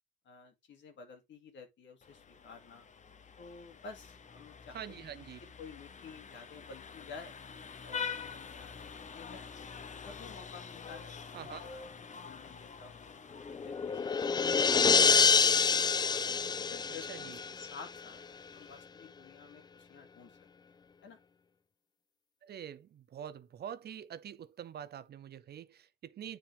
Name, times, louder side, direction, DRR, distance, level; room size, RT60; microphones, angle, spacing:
voice 1, 0.2-2.9 3.4-5.1 5.4-7.4 7.8-9.5 9.9-11.8 12.2-15.2 16.0-18.2 18.5-20.5 21.0-21.2, left 5 dB, 70° left, 2.4 m, -52 dB
Vehicle horn car horn honking, 2.0-18.8, left 6 dB, 35° left, 0.9 m, -47 dB
voice 2, 4.7-5.4 11.3-11.7 14.7-14.8 15.1-15.3 16.9-17.4 22.4-26.4, right 9 dB, 55° right, 0.6 m, -45 dB
sound 1, 13.4-18.0, left 5 dB, 20° left, 0.3 m, -27 dB
9.1 x 4.4 x 3.5 m
cardioid pair, 90°, 20 cm